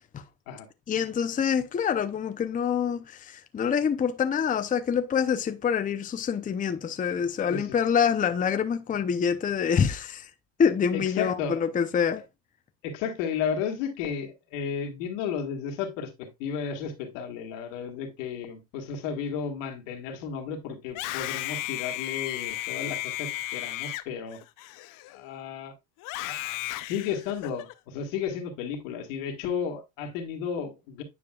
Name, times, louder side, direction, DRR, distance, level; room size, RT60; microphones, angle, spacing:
voice 1, 0.9-10.3 10.6-12.2, left 7 dB, 20° left, 0.6 m, -26 dB
voice 2, 10.9-11.6 12.8-24.4 25.1-25.7 26.2-26.6 26.8-31.0, left 7 dB, 80° left, 1.9 m, -33 dB
Screaming, 20.8-25.4 26.0-27.7, left 16 dB, 60° left, 0.7 m, -34 dB
9.5 x 5.0 x 2.3 m
supercardioid pair, 95°, 36 cm